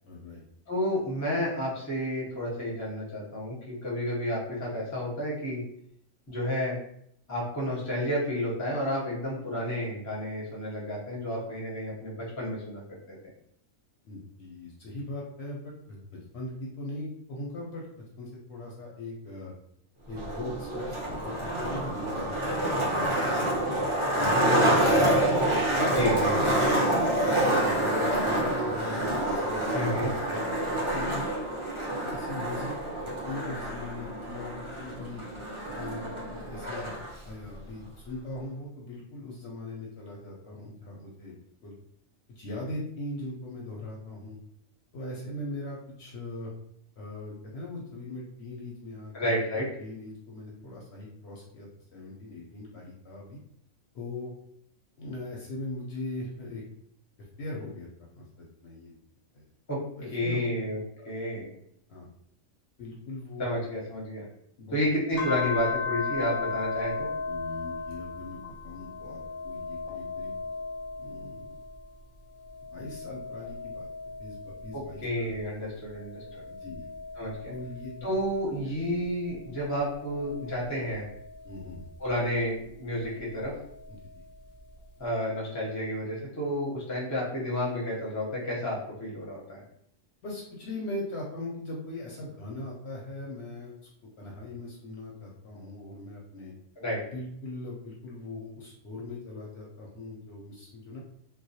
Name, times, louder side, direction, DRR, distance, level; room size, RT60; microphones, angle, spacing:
voice 1, 0.0-0.4 14.0-19.5 20.1-23.8 24.2-25.9 26.3-26.8 27.2-31.2 32.0-32.7 33.2-35.2 35.7-37.0 37.2-41.3 41.6-41.7 42.4-44.4 44.9-46.5 47.0-53.4 53.9-54.3 55.0-56.6 57.4-57.9 58.1-58.9 59.3-59.4 60.0-60.5 61.0-61.1 61.9-62.1 62.8-63.7 64.6-64.8 67.3-70.3 71.0-71.6 72.7-73.9 74.2-75.3 76.5-76.9 77.5-78.1 81.4-81.9 83.9-84.1 90.2-93.7 94.2-96.5 97.1-101.0, left 2 dB, 65° left, -3 dB, 0.7 m, -40 dB
voice 2, 0.7-5.6 6.3-6.8 7.3-13.2 25.9-26.6 29.7-30.1 49.1-49.7 59.7-59.8 60.1-60.8 61.0-61.5 63.4-64.2 64.7-67.1 74.7-76.4 77.2-77.5 78.0-81.0 82.0-83.5 85.0-89.6 96.8-97.0, equal, 20° left, -4 dB, 0.5 m, -31 dB
Skateboard, 20.1-37.1, right 1 dB, 50° right, 0.3 m, -27 dB
sound 1, 65.2-71.9 72.3-75.2 75.8-78.6 79.3-81.8 83.1-84.2, left 4 dB, 90° left, 1.0 m, -37 dB
2.3 x 2.0 x 2.6 m, 0.71 s
omnidirectional pair, 1.3 m